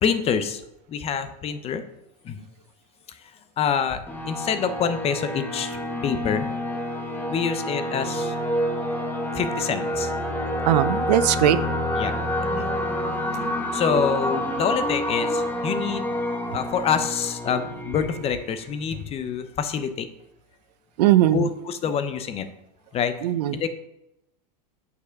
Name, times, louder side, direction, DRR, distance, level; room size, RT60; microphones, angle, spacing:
voice 1, 0.0-0.6 0.9-1.8 2.2-2.4 3.6-6.5 7.3-8.4 9.3-10.1 12.0-12.1 12.6-12.7 13.7-16.0 16.5-20.1 21.3-22.5 22.9-23.1 23.5-23.7, left 7 dB, 30° left, 11 dB, 0.7 m, -26 dB
sound 1, 4.1-19.4, equal, 10° left, 1.0 m, -28 dB
voice 2, 10.7-11.6 21.0-21.5 23.2-23.7, right 13 dB, 75° right, 14 dB, 0.5 m, -19 dB
6.9 x 4.7 x 5.8 m, 0.87 s
supercardioid pair, 120°, 21 cm